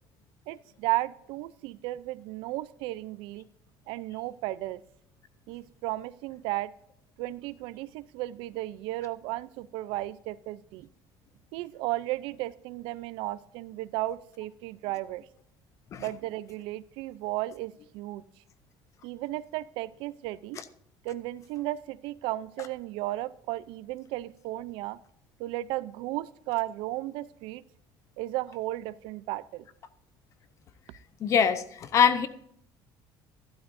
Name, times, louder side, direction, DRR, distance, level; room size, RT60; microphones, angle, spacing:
voice 1, 0.5-3.5 3.9-4.8 5.5-6.7 7.2-10.9 11.5-15.2 16.0-18.2 19.0-20.6 21.0-25.0 25.4-27.6 28.2-29.7, right 17 dB, 80° right, 18 dB, 0.5 m, -34 dB
voice 2, 31.2-32.3, left 7 dB, 35° left, 13 dB, 0.7 m, -23 dB
12.0 x 12.0 x 2.6 m, 0.70 s
cardioid pair, 165°, 9 cm